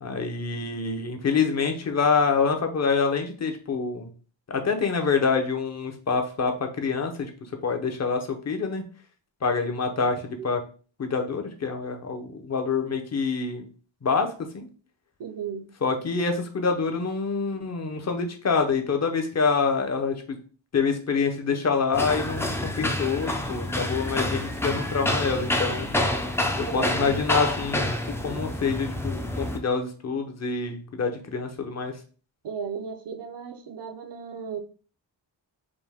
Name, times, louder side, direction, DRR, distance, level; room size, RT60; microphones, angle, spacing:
voice 1, 0.0-4.1 4.5-7.3 7.6-8.8 9.4-10.6 11.0-13.7 14.0-14.7 15.8-20.4 20.7-25.9 26.6-31.9, left 5 dB, 35° left, 0.7 m, -26 dB
voice 2, 15.2-15.7 26.6-27.2 28.3-28.4 32.4-34.6, right 6 dB, 70° right, 0.7 m, -35 dB
sound 1, 21.9-29.6, left 1 dB, 5° left, 0.4 m, -28 dB
5.1 x 2.1 x 3.4 m
wide cardioid pair, 140°, 44 cm